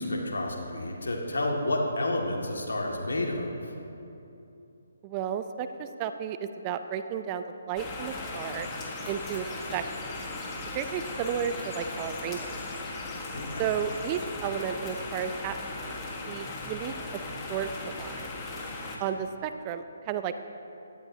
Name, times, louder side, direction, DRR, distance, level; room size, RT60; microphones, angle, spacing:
voice 1, 0.0-3.7 13.3-13.6, left 1 dB, 70° left, 0 dB, 2.0 m, -30 dB
voice 2, 5.0-8.7 9.1-9.8 10.7-12.6 13.6-15.6 15.8-17.2 17.5-18.3 19.0-20.5, right 8 dB, 25° right, 10 dB, 0.5 m, -33 dB
sound 1, 7.8-19.0, left 2 dB, 20° left, 1.4 m, -37 dB
16.5 x 11.5 x 2.8 m, 2.8 s
figure-of-eight pair, 140°, 0 cm